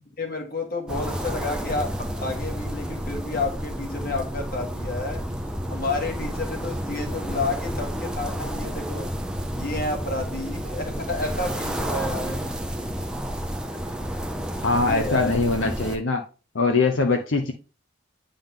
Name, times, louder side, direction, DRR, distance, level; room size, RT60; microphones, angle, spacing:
voice 1, 0.2-5.2 5.7-9.1 9.5-12.5 14.8-15.3, left 2 dB, 45° left, 2 dB, 1.6 m, -30 dB
sound 1, 0.9-16.0, equal, 5° right, 0.5 m, -31 dB
voice 2, 14.6-16.2 16.5-17.5, left 3 dB, 70° left, 3 dB, 0.7 m, -22 dB
8.9 x 3.8 x 3.6 m, 0.34 s
head